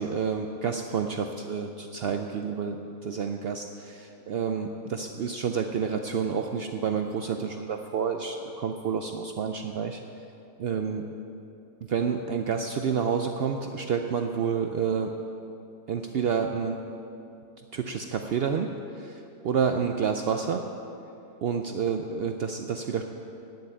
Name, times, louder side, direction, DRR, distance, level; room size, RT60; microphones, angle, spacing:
voice 1, 0.0-10.0 10.6-11.1 11.8-15.1 15.9-16.8 17.7-20.6 21.4-23.0, right 6 dB, 85° right, 5 dB, 0.5 m, -29 dB
9.2 x 7.8 x 8.7 m, 2.7 s
omnidirectional pair, 1.6 m